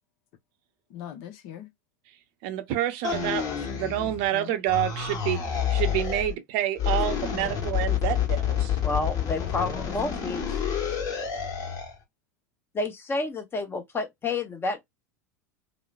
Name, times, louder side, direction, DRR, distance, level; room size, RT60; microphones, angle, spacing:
voice 1, 0.9-1.7 3.2-3.8 4.3-4.5 9.4-9.9 10.2-10.4, left 9 dB, 55° left, 0.7 m, -41 dB
voice 2, 2.4-3.4 3.7-5.4 5.7-8.8, right 13 dB, 55° right, 0.6 m, -28 dB
sound 1, 3.0-4.3 4.7-6.3 6.8-11.9, left 8 dB, 40° left, 1.2 m, -28 dB
voice 3, 8.8-10.4 12.7-14.9, left 3 dB, 25° left, 0.9 m, -30 dB
3.0 x 2.1 x 2.3 m
hypercardioid pair, 85°, 10 cm